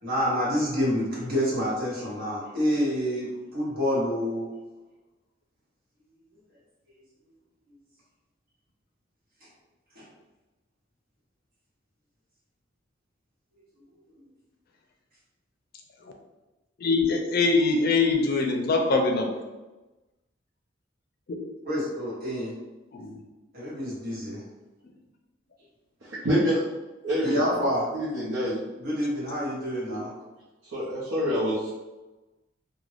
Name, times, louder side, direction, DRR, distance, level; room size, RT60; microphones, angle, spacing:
voice 1, 0.0-4.5 9.9-10.1 21.6-22.5 23.5-24.4 27.2-27.8 28.8-30.1, equal, 55° right, -6 dB, 1.1 m, -27 dB
voice 2, 16.8-19.3 22.9-23.1, left 3 dB, 50° left, 3 dB, 0.4 m, -23 dB
voice 3, 26.0-26.6 27.0-27.4 27.9-28.6 29.9-30.0 30.7-31.7, equal, 85° right, -8 dB, 0.7 m, -26 dB
2.5 x 2.1 x 3.2 m, 1.1 s
head